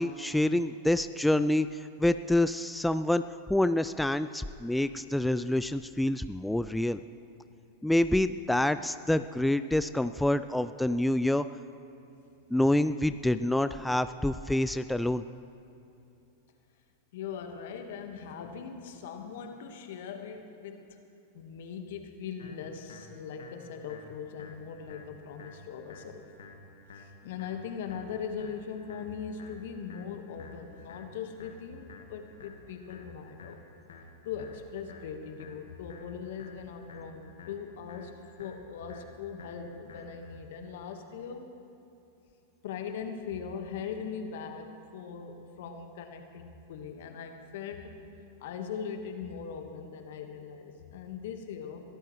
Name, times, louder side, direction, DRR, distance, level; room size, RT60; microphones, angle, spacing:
voice 1, 0.0-3.2 3.5-7.0 7.8-11.5 12.5-15.2, left 1 dB, 5° left, 11 dB, 0.3 m, -27 dB
voice 2, 17.1-21.0 21.3-26.3 26.9-33.6 34.2-41.5 42.6-47.9 48.4-51.8, left 6 dB, 65° left, 5 dB, 1.5 m, -40 dB
sound 1, 22.4-40.4, left 3 dB, 85° left, 1.6 m, -52 dB
22.0 x 14.0 x 3.2 m, 2.8 s
hypercardioid pair, 105°, 0 cm